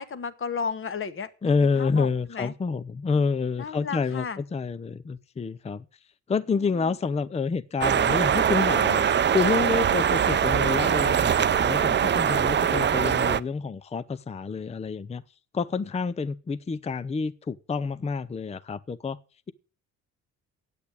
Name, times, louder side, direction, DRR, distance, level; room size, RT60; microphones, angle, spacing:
voice 1, 0.0-2.5 3.6-4.4 6.5-6.9, left 5 dB, 45° left, 1.5 m, -34 dB
voice 2, 1.4-5.9 6.3-15.2 15.5-19.2, left 5 dB, 20° left, 0.6 m, -28 dB
sound 1, 7.8-13.4, right 8 dB, 35° right, 0.6 m, -22 dB
8.4 x 8.3 x 8.5 m
cardioid pair, 90°, 30 cm